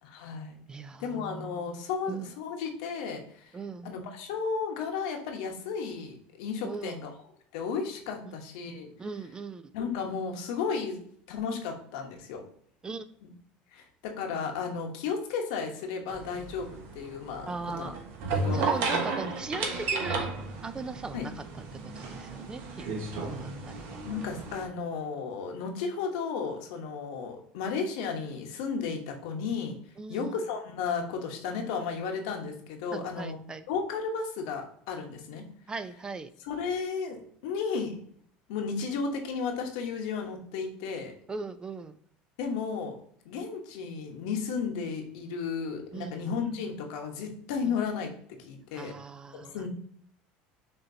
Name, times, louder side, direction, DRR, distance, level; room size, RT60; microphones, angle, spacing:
voice 1, 0.0-0.6 1.0-3.5 3.8-7.1 7.5-8.9 9.7-11.0 11.3-12.4 13.2-13.3 13.7-17.9 18.3-19.0 21.1-21.3 24.1-29.7 30.1-33.4 33.7-35.4 36.5-38.0 38.5-41.1 42.4-42.9 43.2-48.1 48.4-48.9 49.3-49.7, left 5 dB, 80° left, 3 dB, 1.1 m, -34 dB
voice 2, 0.7-1.6 2.1-2.3 3.5-3.9 6.6-7.0 8.3-8.4 9.0-9.7 12.8-13.1 17.5-18.0 18.5-20.3 20.6-21.4 21.7-22.9 23.2-24.0 30.0-30.4 32.9-33.6 35.7-36.3 41.3-42.0 45.9-46.3 47.6-47.8 48.7-49.7, right 4 dB, 20° right, 13 dB, 0.4 m, -39 dB
sound 1, 16.1-24.6, right 3 dB, 65° right, 1.2 m, -33 dB
6.6 x 2.9 x 2.7 m, 0.62 s
supercardioid pair, 110°, 4 cm